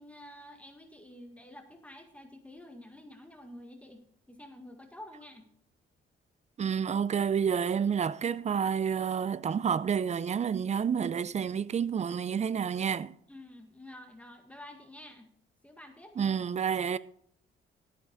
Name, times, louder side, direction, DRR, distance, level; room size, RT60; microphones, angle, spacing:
voice 1, 0.0-4.0 4.3-5.5 13.3-15.3 15.6-16.4, left 1 dB, 5° left, 1.7 m, -49 dB
voice 2, 6.6-13.1 16.2-17.0, right 7 dB, 35° right, 0.6 m, -29 dB
13.5 x 9.0 x 4.0 m
cardioid pair, 90°, 20 cm